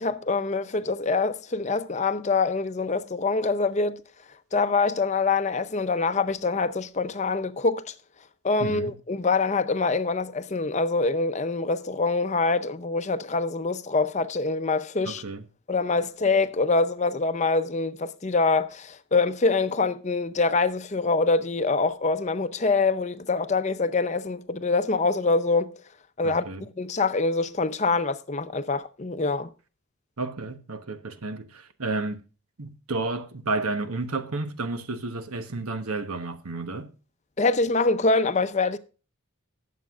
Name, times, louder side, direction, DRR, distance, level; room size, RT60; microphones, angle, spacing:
voice 1, 0.0-4.0 4.5-7.9 8.4-15.2 15.7-25.7 26.2-26.5 26.8-29.5 37.4-38.8, left 3 dB, 30° left, 0.6 m, -25 dB
voice 2, 8.6-8.9 15.0-15.4 26.2-26.7 30.2-32.2 32.6-36.9, right 3 dB, 85° right, 1.1 m, -31 dB
19.0 x 7.5 x 2.4 m
head